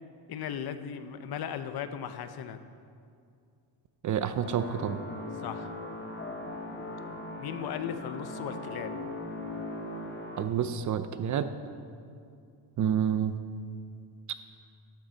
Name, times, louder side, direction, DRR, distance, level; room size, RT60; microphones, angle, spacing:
voice 1, 0.3-2.6 5.4-5.7 7.4-8.9, left 8 dB, 55° left, 10 dB, 0.8 m, -37 dB
voice 2, 4.0-5.0 10.4-11.5 12.8-13.4, right 8 dB, 40° right, 11 dB, 0.6 m, -28 dB
sound 1, 4.3-10.4, left 2 dB, 25° left, 1.2 m, -39 dB
13.0 x 12.5 x 4.0 m, 2.4 s
cardioid pair, 140°, 46 cm